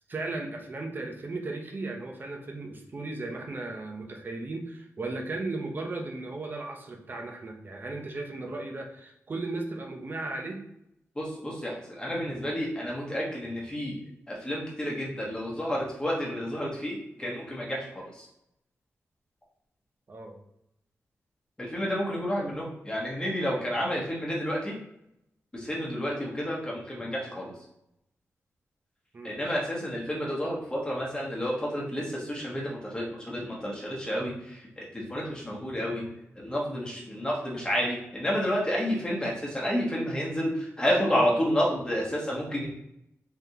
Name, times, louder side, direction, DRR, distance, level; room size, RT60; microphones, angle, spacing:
voice 1, 0.1-10.6 20.1-20.4 29.1-29.4, right 2 dB, 40° right, 2 dB, 0.7 m, -36 dB
voice 2, 11.1-13.9 14.3-18.3 21.6-24.8 25.5-27.5 29.2-36.0 36.4-42.7, equal, 15° left, -4 dB, 1.1 m, -30 dB
3.8 x 3.4 x 2.8 m, 0.80 s
wide cardioid pair, 140°, 5 cm